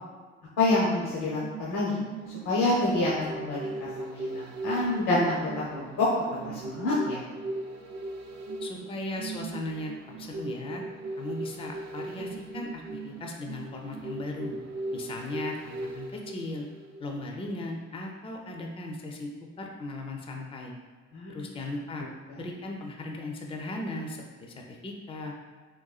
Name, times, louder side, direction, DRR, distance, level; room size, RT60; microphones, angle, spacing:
voice 1, 0.6-2.0 2.4-5.4 5.7-7.2 21.1-21.5 22.3-22.4, left 2 dB, 80° left, -7 dB, 0.7 m, -27 dB
sound 1, 1.2-17.3 17.7-17.8, right 2 dB, 55° right, 0.5 m, -39 dB
voice 2, 8.6-9.9 10.2-10.8 11.2-14.6 14.9-16.7 17.0-19.3 19.6-20.7 21.3-22.1 22.4-25.3, left 2 dB, 20° left, 1 dB, 0.4 m, -37 dB
3.8 x 2.2 x 2.3 m, 1.4 s
cardioid pair, 90°, 30 cm